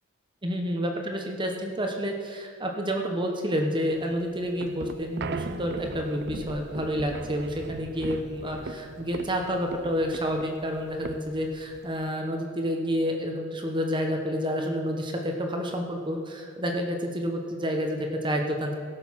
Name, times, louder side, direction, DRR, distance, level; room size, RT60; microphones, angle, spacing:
voice 1, 0.4-18.8, equal, 25° right, 2 dB, 1.1 m, -29 dB
sound 1, 4.0-12.1, right 3 dB, 60° right, 0.6 m, -39 dB
16.5 x 6.7 x 5.8 m, 2.3 s
head